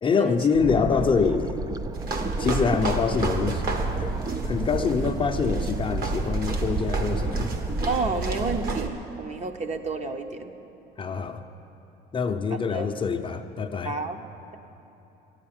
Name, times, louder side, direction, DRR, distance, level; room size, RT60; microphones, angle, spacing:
voice 1, 0.0-1.6 2.4-3.7 4.0-4.1 4.4-7.5 11.0-11.4 12.1-14.0, left 5 dB, 25° left, 5 dB, 0.6 m, -25 dB
sound 1, 0.5-8.9, right 3 dB, 20° right, 0.4 m, -29 dB
sound 2, 1.9-8.9, right 3 dB, 55° right, 1.4 m, -35 dB
voice 2, 7.9-10.5 12.7-12.9 13.8-14.3, right 3 dB, 35° right, 6 dB, 0.9 m, -30 dB
12.5 x 9.8 x 8.8 m, 2.9 s
cardioid pair, 120°, 19 cm